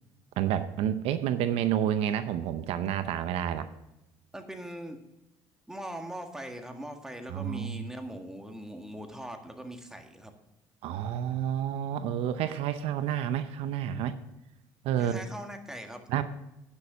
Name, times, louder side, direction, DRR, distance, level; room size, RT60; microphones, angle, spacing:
voice 1, 0.4-3.7 7.3-7.8 10.8-14.2 14.8-15.2 16.1-16.2, right 10 dB, 75° right, 11 dB, 0.7 m, -29 dB
voice 2, 4.3-5.0 5.7-10.3 15.0-16.0, right 1 dB, 5° right, 4 dB, 1.7 m, -41 dB
9.7 x 6.4 x 6.0 m, 0.91 s
supercardioid pair, 75°, 10 cm